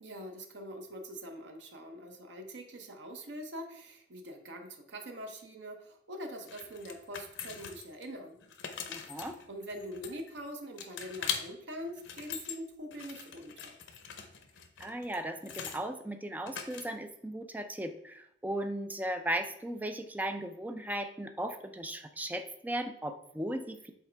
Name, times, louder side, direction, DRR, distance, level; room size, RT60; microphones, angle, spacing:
voice 1, 0.0-8.4 9.5-13.8, equal, 70° right, 4 dB, 0.8 m, -44 dB
sound 1, 6.5-8.0 8.4-10.4 10.8-11.4 11.9-12.6 12.9-15.8 16.5-17.1, left 7 dB, 85° left, 0.7 m, -41 dB
voice 2, 8.9-9.4 14.8-23.9, right 1 dB, 10° right, 7 dB, 0.4 m, -37 dB
7.3 x 4.2 x 3.3 m, 0.72 s
head